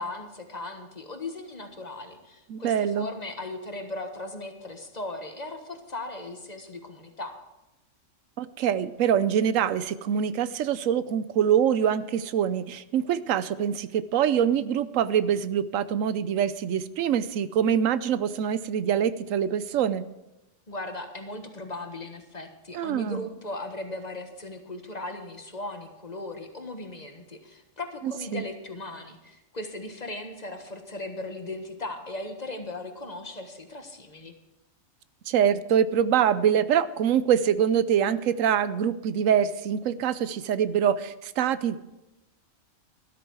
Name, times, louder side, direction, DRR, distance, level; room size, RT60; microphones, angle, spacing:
voice 1, 0.0-7.4 20.7-34.3, left 2 dB, 35° left, 5 dB, 1.5 m, -38 dB
voice 2, 2.5-3.1 8.4-20.1 22.7-23.3 28.0-28.4 35.3-41.8, right 9 dB, 85° right, 15 dB, 1.0 m, -24 dB
13.0 x 13.0 x 4.7 m, 0.95 s
omnidirectional pair, 1.3 m